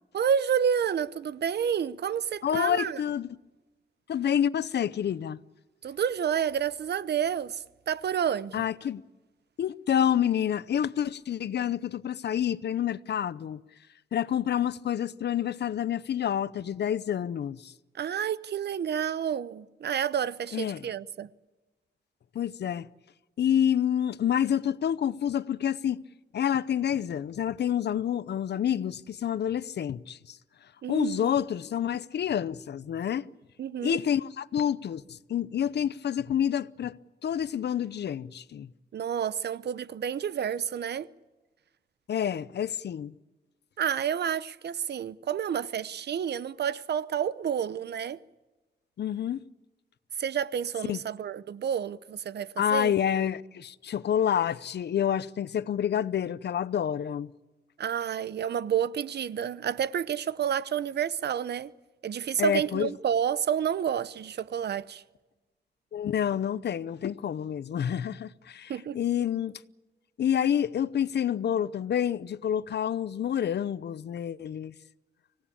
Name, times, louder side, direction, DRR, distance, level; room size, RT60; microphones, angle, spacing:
voice 1, 0.1-3.0 5.8-8.6 17.9-21.3 30.8-31.4 33.6-34.0 38.9-41.1 43.8-48.2 50.2-53.0 57.8-61.7 62.0-65.0 68.7-69.0, right 8 dB, 70° right, 0.7 m, -29 dB
voice 2, 2.4-3.3 4.1-5.4 8.5-9.0 9.6-13.6 14.1-17.7 20.5-20.9 22.3-22.9 23.4-26.0 26.3-30.4 30.9-33.3 33.8-37.0 37.2-38.7 42.1-43.1 49.0-49.4 50.9-51.0 52.6-57.3 62.4-62.9 65.9-69.6 70.2-74.7, left 9 dB, 75° left, 0.7 m, -28 dB
25.5 x 17.5 x 8.6 m
wide cardioid pair, 150°, 18 cm